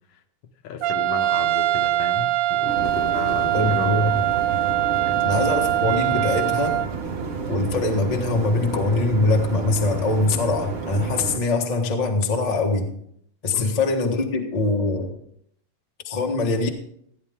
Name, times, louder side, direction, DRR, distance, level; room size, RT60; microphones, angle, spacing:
voice 1, 0.6-3.9 5.0-5.6 13.4-13.8, left 7 dB, 75° left, 6 dB, 2.3 m, -34 dB
Trumpet, 0.8-6.9, right 13 dB, 80° right, 1.7 m, -23 dB
sound 1, 2.7-11.4, right 4 dB, 50° right, 2.0 m, -31 dB
voice 2, 3.5-4.3 5.2-6.8 7.5-12.9 13.4-15.2 16.0-16.7, left 2 dB, 35° left, 2 dB, 0.6 m, -23 dB
16.0 x 9.8 x 3.6 m, 0.68 s
omnidirectional pair, 3.3 m